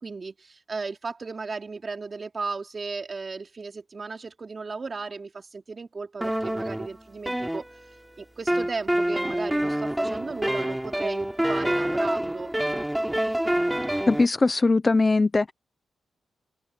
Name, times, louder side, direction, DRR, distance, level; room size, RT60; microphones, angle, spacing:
voice 1, 0.0-7.8 8.2-12.5, right 4 dB, 35° right, 3.2 m, -35 dB
sound 1, 6.2-8.1 8.5-14.3, right 1 dB, 5° right, 3.5 m, -27 dB
voice 2, 14.1-15.5, left 3 dB, 25° left, 0.7 m, -20 dB
open air
wide cardioid pair, 120°, 0 cm